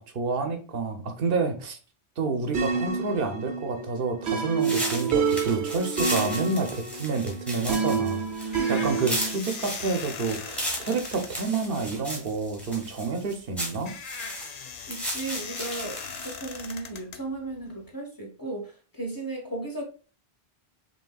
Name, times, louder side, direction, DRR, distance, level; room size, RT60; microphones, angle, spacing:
voice 1, 0.0-1.8 2.2-13.9, right 4 dB, 65° right, 6 dB, 0.9 m, -29 dB
sound 1, 2.5-9.4, right 5 dB, 85° right, 1.0 m, -28 dB
sound 2, 4.6-16.7, equal, ahead, 1.4 m, -35 dB
sound 3, 8.0-17.9, left 6 dB, 55° left, 0.5 m, -41 dB
voice 2, 14.9-19.8, right 2 dB, 20° left, 0 dB, 1.1 m, -35 dB
5.3 x 3.1 x 2.3 m, 0.36 s
omnidirectional pair, 1.1 m